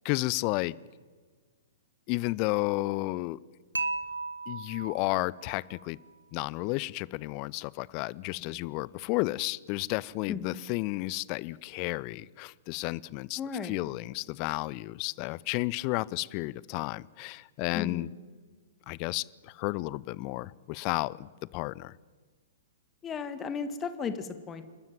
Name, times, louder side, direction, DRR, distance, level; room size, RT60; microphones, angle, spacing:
voice 1, 0.0-0.7 2.1-3.4 4.5-6.0 6.3-18.1 18.9-21.9, left 21 dB, 35° left, 23 dB, 0.5 m, -32 dB
Dishes pots and pans / Chink clink, 3.8-5.9, right 3 dB, 80° right, 1.4 m, -36 dB
voice 2, 13.4-13.8 17.7-18.1 23.0-24.6, left 6 dB, 20° left, 11 dB, 1.7 m, -35 dB
28.5 x 13.0 x 9.3 m, 1.5 s
figure-of-eight pair, 110°, 0 cm